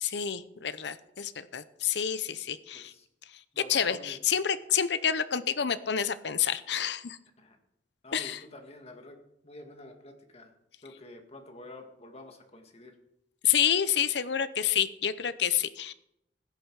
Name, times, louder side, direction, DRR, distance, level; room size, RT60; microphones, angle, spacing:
voice 1, 0.0-2.9 3.7-7.2 8.1-8.4 13.4-15.9, left 8 dB, 65° left, 14 dB, 0.7 m, -28 dB
voice 2, 2.7-3.1 3.5-4.2 7.4-7.6 8.0-10.5 10.8-13.0, left 1 dB, 35° left, 4 dB, 1.9 m, -48 dB
16.0 x 10.0 x 4.8 m, 0.80 s
head